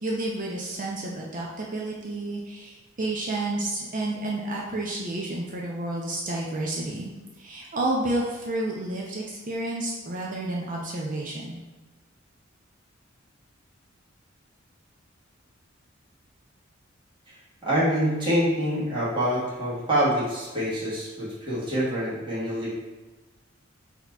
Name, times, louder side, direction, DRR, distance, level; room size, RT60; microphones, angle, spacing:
voice 1, 0.0-7.1 7.4-11.6, right 2 dB, 40° right, -3 dB, 0.6 m, -30 dB
voice 2, 17.3-22.7, equal, 25° right, -9 dB, 1.5 m, -26 dB
4.2 x 2.9 x 4.4 m, 1.2 s
head